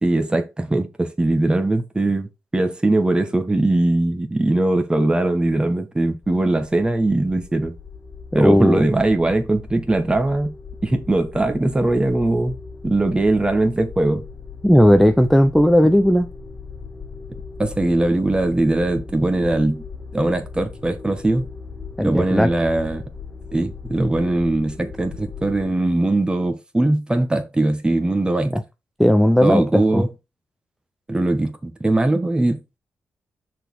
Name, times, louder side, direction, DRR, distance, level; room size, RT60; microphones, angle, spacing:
voice 1, 0.0-7.7 8.3-10.5 10.8-12.6 12.8-14.2 17.6-19.8 20.1-21.5 22.0-23.0 23.5-28.6 29.4-30.1 31.1-32.8, right 2 dB, 15° right, 1.5 m, -20 dB
sound 1, 6.2-25.7, left 5 dB, 25° left, 2.0 m, -38 dB
voice 2, 8.3-8.9 14.6-16.3 22.0-22.5 28.5-28.6 29.0-30.0, equal, ahead, 0.7 m, -15 dB
6.3 x 4.3 x 4.6 m
cardioid pair, 75°, 5 cm